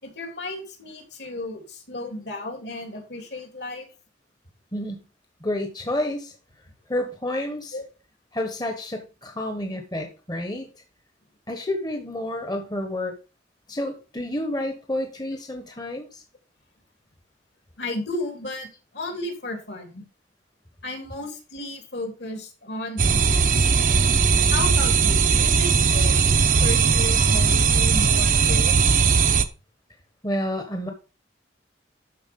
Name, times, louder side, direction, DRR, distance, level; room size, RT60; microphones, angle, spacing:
voice 1, 0.0-3.9 7.7-7.8 17.8-20.0 20.8-23.7 24.5-26.2 26.6-29.1, left 2 dB, 65° left, 4 dB, 3.0 m, -34 dB
voice 2, 4.7-5.1 5.4-6.3 6.9-7.8 8.3-10.7 11.5-13.1 13.7-16.2 30.2-30.9, left 1 dB, 20° left, 5 dB, 1.1 m, -29 dB
sound 1, 23.0-29.4, right 5 dB, 45° right, 0.7 m, -19 dB
12.5 x 4.4 x 5.3 m, 0.34 s
head